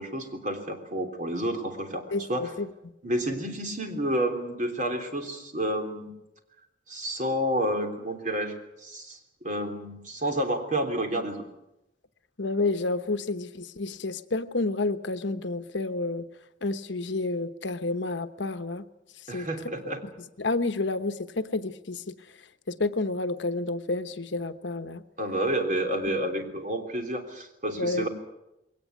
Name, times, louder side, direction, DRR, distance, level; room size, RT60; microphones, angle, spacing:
voice 1, 0.0-2.5 3.0-6.1 6.9-11.4 19.3-20.0 25.2-28.1, right 1 dB, 40° right, 4 dB, 3.3 m, -30 dB
voice 2, 2.1-2.7 12.4-16.3 16.6-18.9 19.3-19.5 20.4-22.2 22.7-25.0 27.8-28.1, left 2 dB, 70° left, 11 dB, 1.1 m, -30 dB
21.5 x 18.5 x 9.5 m, 0.90 s
head